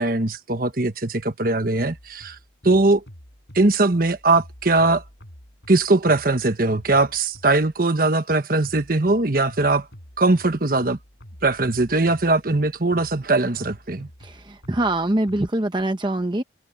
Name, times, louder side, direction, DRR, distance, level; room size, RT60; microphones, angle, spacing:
voice 1, 0.0-2.3 2.6-3.0 3.5-5.0 5.7-9.9 10.2-11.0 11.4-14.1, right 2 dB, 50° right, 1.3 m, -20 dB
sound 1, 1.8-7.8 8.6-15.5, equal, 70° left, 6.3 m, -46 dB
voice 2, 14.2-16.4, right 1 dB, 25° right, 0.9 m, -24 dB
head